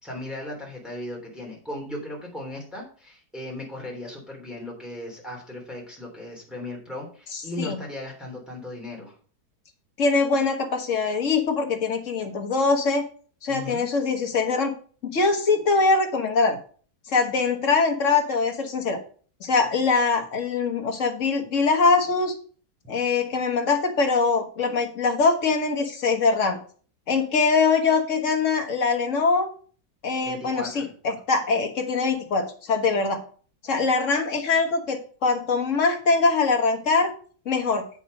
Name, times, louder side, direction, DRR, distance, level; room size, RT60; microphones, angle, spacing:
voice 1, 0.0-9.1 13.5-13.8 30.2-30.9, left 1 dB, ahead, -2 dB, 3.3 m, -37 dB
voice 2, 7.3-7.8 10.0-13.0 13.4-14.7 15.0-16.6 17.1-19.0 19.4-22.3 22.9-26.6 27.1-29.5 30.0-33.2 33.6-37.1 37.5-37.8, left 4 dB, 50° left, 4 dB, 1.8 m, -23 dB
8.4 x 6.0 x 5.2 m, 0.43 s
omnidirectional pair, 1.7 m